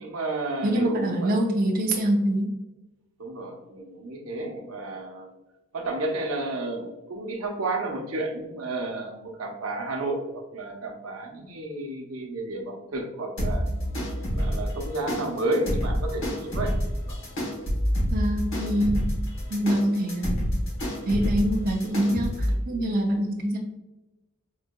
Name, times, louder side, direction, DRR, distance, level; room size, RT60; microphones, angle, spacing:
voice 1, 0.0-1.3 3.2-5.3 5.7-13.7 14.3-16.8 17.1-17.2, right 2 dB, 85° right, 2 dB, 0.7 m, -31 dB
voice 2, 0.6-2.5 18.1-19.0 19.5-20.5 21.0-23.6, right 1 dB, 45° right, 0 dB, 0.5 m, -25 dB
sound 1, 13.4-22.5, equal, 65° left, 1.0 m, -28 dB
4.7 x 2.7 x 2.2 m, 1.0 s
head